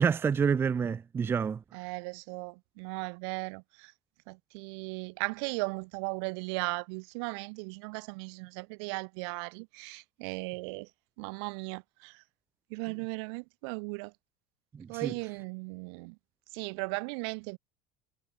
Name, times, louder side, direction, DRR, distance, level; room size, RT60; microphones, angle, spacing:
voice 1, 0.0-1.6 14.7-15.1, right 6 dB, 15° right, 0.7 m, -28 dB
voice 2, 1.7-3.9 4.3-10.9 11.2-12.2 12.7-14.1 14.9-16.2 16.5-17.6, right 32 dB, 70° right, 3.0 m, -37 dB
cardioid pair, 165°, 14 cm